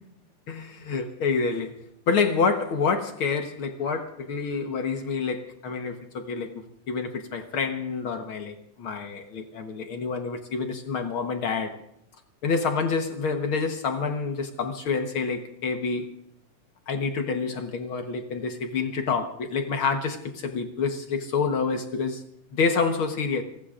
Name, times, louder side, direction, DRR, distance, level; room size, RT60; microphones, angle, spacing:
voice 1, 0.5-1.8 2.1-11.8 12.4-16.1 16.9-22.2 22.5-23.4, left 5 dB, 60° left, 1.4 m, -28 dB
28.5 x 20.0 x 2.5 m
omnidirectional pair, 3.8 m